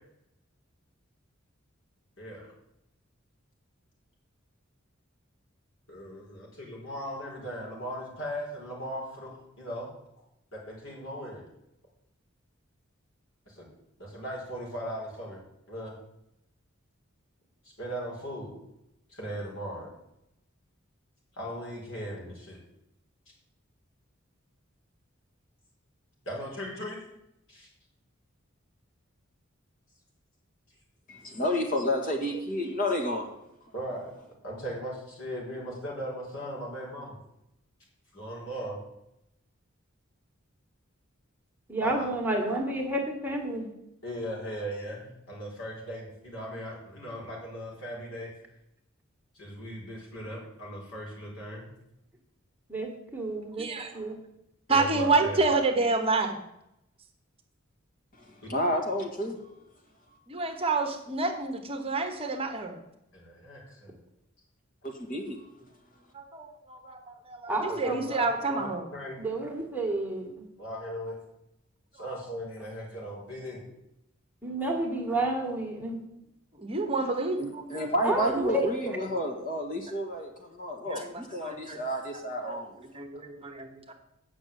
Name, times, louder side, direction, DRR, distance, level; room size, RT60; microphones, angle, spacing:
voice 1, 2.2-2.5 5.9-9.9 10.5-11.4 13.5-13.7 14.0-15.4 15.7-15.9 17.8-18.5 19.1-19.9 21.4-22.6 26.2-27.0 27.5-27.7 33.7-34.1 34.4-37.1 38.1-38.8 41.8-42.1 44.0-48.3 49.3-51.7 54.7-55.4 58.4-58.5 63.1-63.9 67.7-69.2 70.6-71.1 71.9-73.6, equal, 70° left, -2 dB, 4.5 m, -38 dB
voice 2, 31.1-33.3 58.2-59.4 64.8-65.4 77.4-82.7, equal, 40° left, 1 dB, 1.9 m, -30 dB
voice 3, 41.7-43.7 52.7-54.2 67.5-68.0 69.2-70.4 74.4-76.0 78.0-79.0 81.6-81.7, right 2 dB, 10° right, 0 dB, 1.6 m, -30 dB
voice 4, 53.6-53.9 54.7-56.4 60.3-62.8 66.1-68.9 76.5-77.9 80.9-81.8 82.4-83.9, right 3 dB, 30° right, 4 dB, 1.2 m, -29 dB
8.4 x 6.2 x 8.3 m, 0.83 s
head